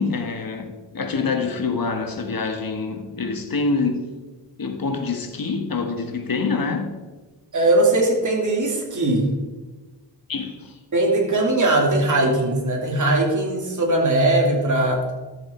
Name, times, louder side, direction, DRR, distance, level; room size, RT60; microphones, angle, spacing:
voice 1, 0.0-4.0 4.6-6.9 10.3-10.7, left 4 dB, 55° left, 1.7 m, -26 dB
voice 2, 7.5-9.3 10.9-15.0, right 2 dB, 45° right, 2.9 m, -20 dB
13.0 x 7.2 x 4.5 m
cardioid pair, 80°, 41 cm